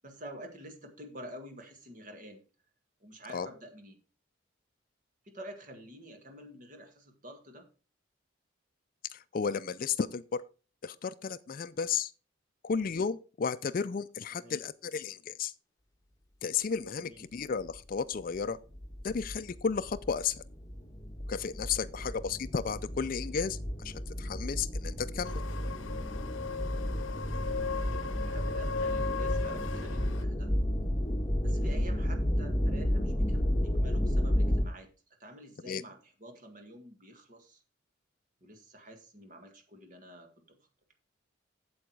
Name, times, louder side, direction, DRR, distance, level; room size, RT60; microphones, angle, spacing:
voice 1, 0.0-2.4 3.0-4.0 5.2-7.7 14.3-14.6 17.0-17.2 22.0-22.1 27.5-30.5 31.4-34.9 35.2-37.6 38.4-40.6, equal, 40° right, 1.9 m, -49 dB
voice 2, 9.1-10.4 10.8-12.1 12.6-15.5 16.4-18.6 19.0-20.4 21.3-25.4 35.7-35.8, left 6 dB, 45° left, 0.4 m, -33 dB
sound 1, 17.8-17.9 18.3-18.4 18.7-34.6, equal, 20° left, 1.3 m, -32 dB
sound 2, 25.2-30.2, left 5 dB, 80° left, 0.7 m, -37 dB
8.4 x 7.8 x 4.7 m
head